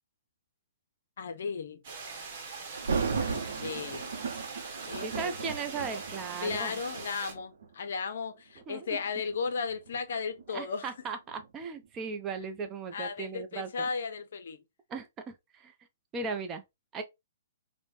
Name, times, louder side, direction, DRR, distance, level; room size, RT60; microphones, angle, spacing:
voice 1, 1.2-1.8 3.2-4.1 4.9-5.3 6.4-10.9 12.9-14.6, left 5 dB, 60° left, 0.5 m, -35 dB
sound 1, 1.8-7.3, right 4 dB, 50° right, 1.0 m, -42 dB
Thunder, 2.8-7.7 8.4-8.6 9.3-12.1 12.4-12.5, right 5 dB, 65° right, 0.7 m, -36 dB
voice 2, 5.0-6.7 8.7-9.0 10.5-13.9 14.9-15.7 16.1-16.6 16.9-17.0, right 5 dB, 25° right, 0.5 m, -37 dB
3.1 x 2.1 x 2.5 m
figure-of-eight pair, 120°, 0 cm